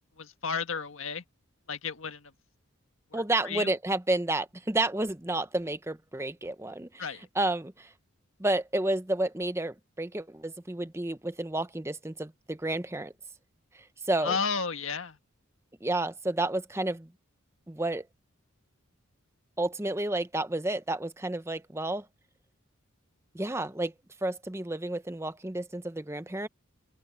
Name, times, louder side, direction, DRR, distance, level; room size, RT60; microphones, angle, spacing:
voice 1, 0.2-1.2 1.7-2.3 3.1-3.7 7.0-7.2 14.2-15.2, left 5 dB, 65° left, 1.6 m, -33 dB
voice 2, 3.1-7.9 8.4-13.1 14.1-14.4 15.8-17.1 17.7-18.1 19.6-22.1 23.3-23.9 24.2-26.5, right 2 dB, 10° right, 0.7 m, -31 dB
open air
head